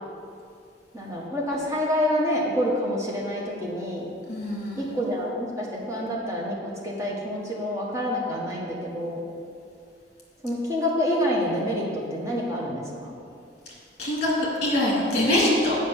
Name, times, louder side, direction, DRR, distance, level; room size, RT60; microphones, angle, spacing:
voice 1, 0.9-4.0 4.8-9.2 10.4-13.1, equal, 15° right, -4 dB, 1.3 m, -27 dB
voice 2, 4.3-4.8 14.0-15.8, left 1 dB, 35° left, -5 dB, 2.1 m, -23 dB
7.6 x 5.1 x 6.9 m, 2.4 s
head